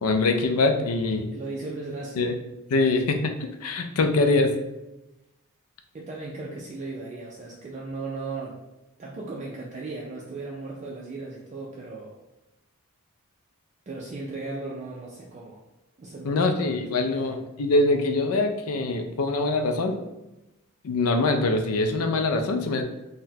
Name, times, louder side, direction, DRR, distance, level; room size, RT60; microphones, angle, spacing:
voice 1, 0.0-1.3 2.2-2.3 2.7-3.3 3.6-4.5 16.2-20.0 20.8-22.8, left 3 dB, 75° left, 6 dB, 0.4 m, -23 dB
voice 2, 1.3-2.3 5.9-8.6 9.0-12.2 13.9-15.6 16.0-17.4, right 3 dB, 30° right, -3 dB, 0.3 m, -37 dB
3.9 x 2.1 x 2.7 m, 0.95 s
head